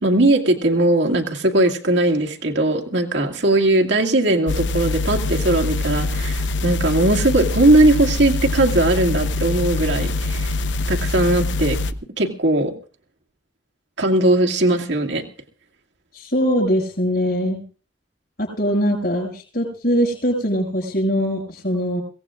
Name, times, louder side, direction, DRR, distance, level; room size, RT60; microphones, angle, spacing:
voice 1, 0.0-10.5 10.9-11.8 12.2-12.7 14.0-15.2, right 2 dB, 80° right, 2 dB, 2.1 m, -19 dB
sound 1, 4.5-11.9, left 2 dB, 85° left, 0.9 m, -24 dB
voice 2, 16.1-17.6 18.4-22.0, equal, 55° left, -3 dB, 6.1 m, -22 dB
23.5 x 17.5 x 2.5 m, 0.38 s
head